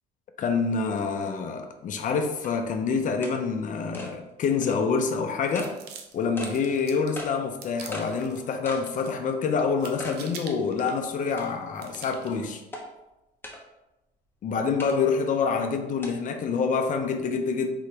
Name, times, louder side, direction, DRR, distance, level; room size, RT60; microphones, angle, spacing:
voice 1, 0.4-5.7 6.1-12.6 14.4-17.7, left 5 dB, 50° left, 5 dB, 0.6 m, -27 dB
sound 1, 1.3-1.4 2.0-2.1 2.4-2.5 3.2-3.4 3.9-4.1 4.6-4.8 5.5-5.7 6.4-6.5 7.2-7.3 7.9-8.1 8.7-8.9 9.3-9.4 10.0-10.2 10.6-10.7 11.4-11.8 12.7-12.8 13.4-13.6 14.8-15.0 16.0-16.1, left 1 dB, 15° left, 1.0 m, -38 dB
sound 2, 5.5-7.2 7.6-8.4 8.7-9.3 9.6-11.4 11.8-12.4, right 6 dB, 75° right, 0.7 m, -45 dB
3.9 x 3.0 x 4.5 m, 0.95 s
cardioid pair, 110°, 17 cm